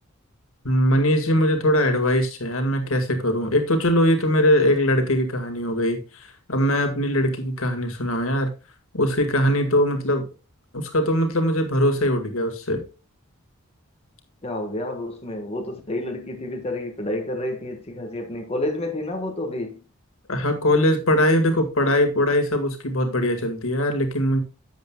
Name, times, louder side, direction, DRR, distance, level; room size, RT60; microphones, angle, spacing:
voice 1, 0.6-8.5 8.9-10.2 10.7-12.8 20.3-24.4, equal, 70° left, 1.8 m, -21 dB
voice 2, 14.4-19.8, left 1 dB, 30° left, 1.5 m, -29 dB
12.0 x 7.8 x 2.3 m
head